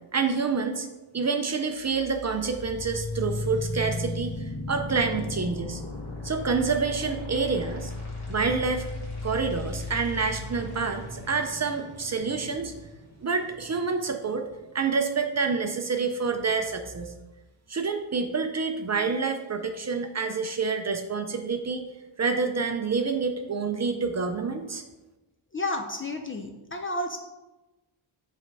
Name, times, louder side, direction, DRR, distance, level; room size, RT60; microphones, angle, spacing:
voice 1, 0.1-0.9 1.1-5.8 6.2-7.9 8.3-8.9 9.2-12.7 13.2-14.5 14.7-17.1 17.7-21.9 22.2-24.8, right 4 dB, 35° right, 5 dB, 0.4 m, -28 dB
sound 1, 1.8-13.8, left 2 dB, 55° left, 1.7 m, -36 dB
voice 2, 25.5-27.2, left 2 dB, 30° left, 4 dB, 0.4 m, -31 dB
7.2 x 3.3 x 4.7 m, 1.1 s
wide cardioid pair, 165°, 49 cm